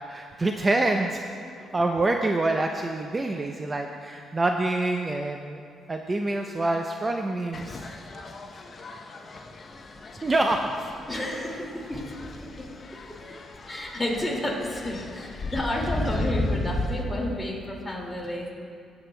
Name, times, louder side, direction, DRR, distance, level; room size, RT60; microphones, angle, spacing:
voice 1, 0.1-1.2 1.7-5.6 5.9-7.8 10.2-10.6, right 2 dB, 25° right, 3 dB, 0.5 m, -26 dB
sound 1, 7.5-17.0, left 2 dB, 40° left, 0.7 m, -35 dB
voice 2, 11.1-12.1 12.4-12.5 13.7-18.5, left 1 dB, 15° left, -2 dB, 2.1 m, -31 dB
17.5 x 7.9 x 2.2 m, 2.2 s
cardioid pair, 90°, 0 cm